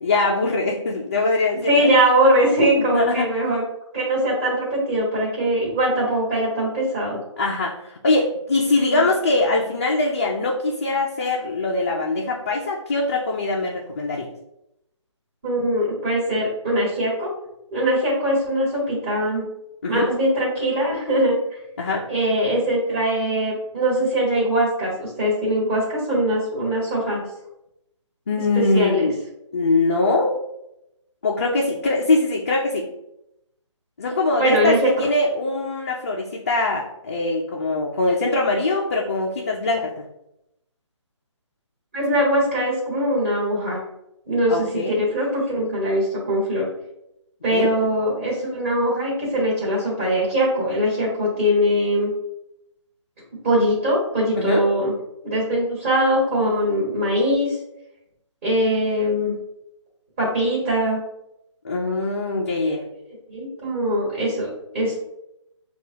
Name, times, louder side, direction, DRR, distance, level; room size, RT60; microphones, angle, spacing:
voice 1, 0.0-1.8 2.9-3.3 7.4-14.3 19.8-20.1 21.8-22.0 28.3-29.2 29.5-30.4 31.2-32.8 34.0-40.0 44.5-44.9 47.5-47.7 54.4-54.7 61.6-62.8, left 2 dB, 30° left, -2 dB, 0.4 m, -22 dB
voice 2, 1.5-3.6 3.9-7.2 8.9-9.0 15.4-17.3 17.7-19.4 19.9-21.4 22.1-27.3 28.5-29.1 34.4-34.9 41.9-43.8 44.3-46.7 47.4-52.1 53.4-54.9 55.2-57.5 58.4-59.4 60.2-61.0 63.3-65.0, equal, 25° right, -6 dB, 1.5 m, -21 dB
6.5 x 2.3 x 2.7 m, 0.83 s
hypercardioid pair, 165°, 16 cm